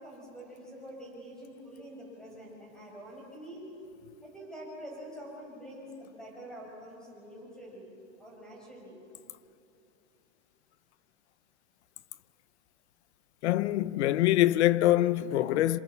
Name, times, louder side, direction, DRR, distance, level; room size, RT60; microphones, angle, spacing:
voice 1, 0.0-3.7 4.2-7.9 8.2-9.0, equal, ahead, 6.4 m, -46 dB
voice 2, 13.4-15.8, left 14 dB, 60° left, 0.9 m, -24 dB
27.0 x 27.0 x 7.0 m
supercardioid pair, 155°, 38 cm